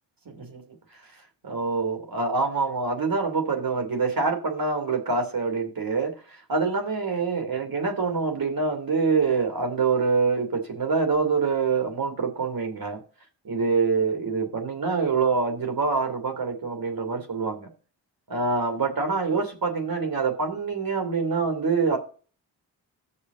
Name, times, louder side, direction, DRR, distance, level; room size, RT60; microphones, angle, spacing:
voice 1, 0.3-0.6 0.9-1.0 1.4-13.0 13.4-17.7 18.3-22.0, right 4 dB, 45° right, 5 dB, 2.9 m, -25 dB
6.6 x 5.5 x 7.2 m, 0.37 s
supercardioid pair, 45°, 48 cm